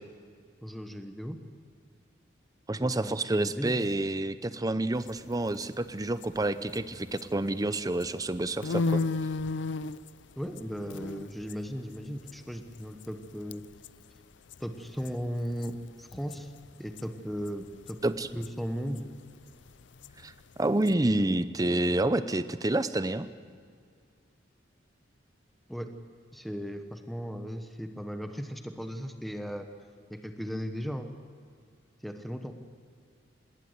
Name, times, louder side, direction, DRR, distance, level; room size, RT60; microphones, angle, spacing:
voice 1, 0.6-1.4 2.8-3.8 10.4-13.6 14.6-16.5 16.8-18.0 18.3-19.1 25.7-25.9 26.3-29.7 30.1-31.1 32.0-32.6, equal, ahead, 6 dB, 1.1 m, -36 dB
voice 2, 2.7-9.0 18.0-18.3 20.2-23.3, right 2 dB, 20° right, 13 dB, 0.7 m, -28 dB
sound 1, 5.0-7.5 7.8-13.2 13.5-13.9 14.2-14.3 14.5-17.1 17.3-20.9, left 3 dB, 70° left, 0.5 m, -35 dB
20.0 x 18.0 x 8.1 m, 2.1 s
head